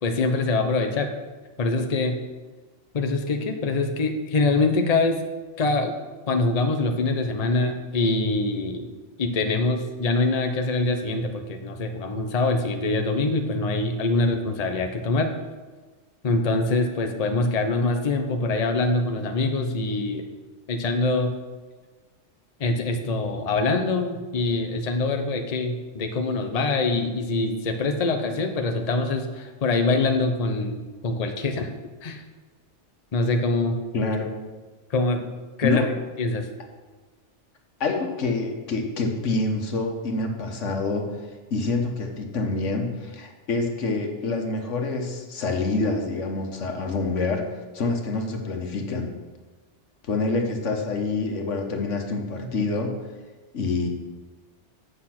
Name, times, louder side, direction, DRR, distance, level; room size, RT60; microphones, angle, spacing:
voice 1, 0.0-1.1 1.6-2.2 2.9-5.2 5.6-5.9 6.3-8.9 9.2-15.3 16.2-20.2 20.7-21.3 22.6-31.7 32.0-32.2 33.1-33.8 34.9-35.2 35.6-35.8 36.2-36.5, left 3 dB, 35° left, 5 dB, 0.8 m, -24 dB
voice 2, 33.9-34.3 35.6-35.9 37.8-41.1 41.5-47.5 47.7-49.1 50.0-52.9 53.5-53.9, left 3 dB, 85° left, 3 dB, 1.5 m, -26 dB
8.3 x 6.4 x 5.9 m, 1.3 s
omnidirectional pair, 1.2 m